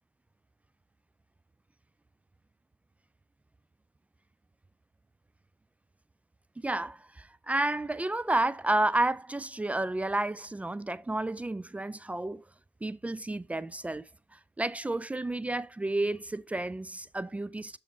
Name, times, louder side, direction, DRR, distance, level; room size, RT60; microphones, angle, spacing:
voice 1, 6.6-12.4 12.8-14.1 14.6-17.8, right 2 dB, 15° right, 0.4 m, -31 dB
6.5 x 5.1 x 4.1 m
hypercardioid pair, 50°, 9 cm